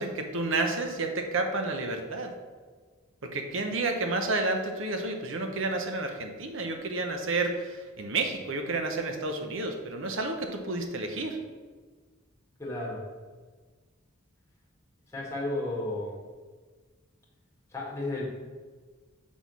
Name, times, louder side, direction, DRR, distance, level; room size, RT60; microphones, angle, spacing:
voice 1, 0.0-2.3 3.2-11.4, right 2 dB, 70° right, 4 dB, 0.9 m, -30 dB
voice 2, 12.6-13.0 15.1-16.2 17.7-18.3, left 2 dB, 15° left, -5 dB, 1.8 m, -33 dB
6.2 x 3.7 x 6.1 m, 1.4 s
head